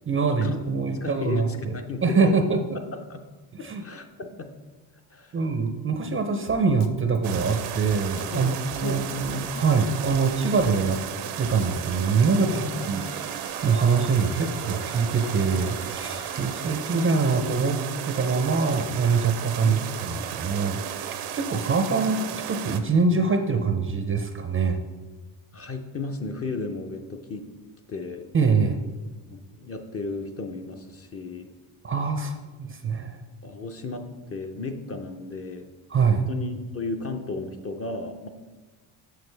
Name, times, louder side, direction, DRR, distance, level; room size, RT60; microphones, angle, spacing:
voice 1, 0.1-1.7 2.0-2.6 3.6-3.8 5.3-11.0 11.4-13.0 13.6-17.8 18.0-24.8 28.3-28.8 31.8-33.2 35.9-36.2, right 4 dB, 25° right, 6 dB, 0.5 m, -24 dB
voice 2, 0.9-2.4 2.7-3.2 3.6-4.5 5.1-5.4 8.3-9.5 12.3-12.9 19.6-19.8 25.5-27.4 27.9-28.2 29.3-31.5 33.4-35.7 36.1-38.3, left 3 dB, 30° left, 5 dB, 0.6 m, -34 dB
Drum kit, 6.5-11.8, left 9 dB, 75° left, 0.7 m, -43 dB
sound 1, 7.2-22.8, right 9 dB, 80° right, 0.7 m, -34 dB
sound 2, 12.8-16.6, right 2 dB, 60° left, 1.4 m, -44 dB
6.4 x 6.4 x 3.3 m, 1.2 s
cardioid pair, 90°, 49 cm